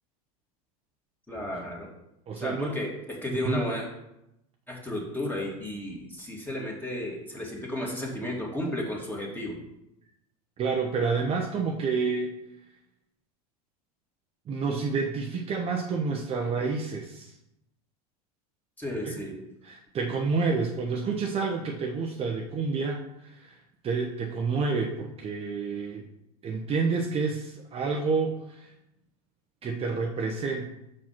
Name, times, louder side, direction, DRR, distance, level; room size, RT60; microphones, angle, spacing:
voice 1, 1.3-1.9 2.4-3.8 4.7-9.6 18.8-19.3, left 1 dB, 10° left, -2 dB, 2.3 m, -33 dB
voice 2, 2.3-2.7 3.4-3.6 10.6-12.4 14.5-17.3 19.0-19.2 19.6-23.5 23.8-26.1 26.4-28.7 29.6-30.7, right 4 dB, 30° right, 1 dB, 0.9 m, -29 dB
6.1 x 4.8 x 5.8 m, 0.85 s
hypercardioid pair, 105°, 19 cm